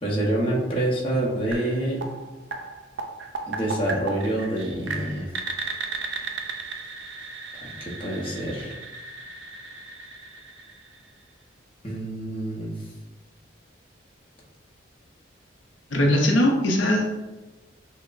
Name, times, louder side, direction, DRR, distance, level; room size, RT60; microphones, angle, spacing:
voice 1, 0.0-2.1 3.5-5.3 7.6-8.7 11.8-12.8, right 1 dB, 30° left, -5 dB, 0.8 m, -27 dB
sound 1, 1.5-11.3, right 4 dB, 65° right, 0.4 m, -36 dB
voice 2, 15.9-17.0, left 1 dB, 80° left, 0 dB, 0.6 m, -20 dB
5.8 x 2.0 x 2.5 m, 1.1 s
head